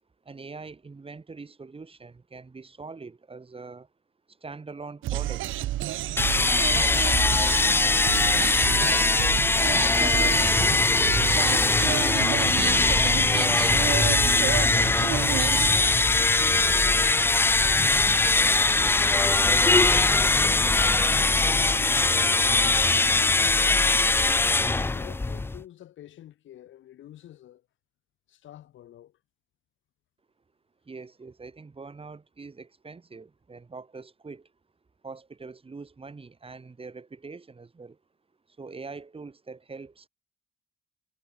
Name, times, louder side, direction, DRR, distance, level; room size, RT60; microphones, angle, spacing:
voice 1, 0.2-3.9 4.3-5.5 6.4-9.5 10.0-13.2 30.8-34.5 35.0-38.0 38.5-40.1, right 4 dB, 30° right, 5.5 m, -43 dB
sound 1, 5.0-15.7, right 15 dB, 80° right, 1.1 m, -31 dB
sound 2, 6.2-25.6, left 3 dB, 10° left, 0.4 m, -21 dB
voice 2, 15.4-15.7 16.2-18.2 18.5-20.4 21.2-23.7 24.7-27.7 28.3-29.2, left 12 dB, 75° left, 3.1 m, -48 dB
cardioid pair, 90°, 20 cm